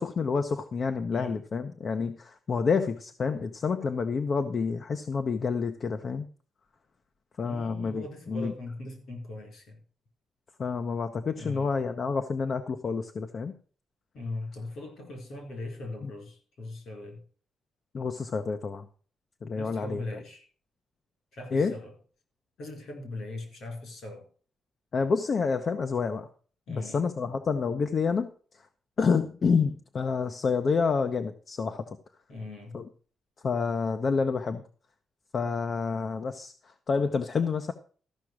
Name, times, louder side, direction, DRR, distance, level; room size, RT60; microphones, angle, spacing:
voice 1, 0.0-6.3 7.4-8.5 10.6-13.5 17.9-18.8 19.4-20.0 21.5-21.7 24.9-26.3 26.7-28.3 29.0-31.9 32.7-32.8 33.4-34.6 35.3-36.5 36.9-37.7, left 5 dB, 45° left, 8 dB, 0.8 m, -28 dB
voice 2, 1.1-1.4 7.4-9.8 11.4-11.8 14.1-17.2 19.6-20.5 21.3-21.9 22.6-24.3 26.7-27.0 32.3-32.8, left 2 dB, 65° left, 4 dB, 4.6 m, -40 dB
13.5 x 5.9 x 6.2 m, 0.42 s
cardioid pair, 120°, 0 cm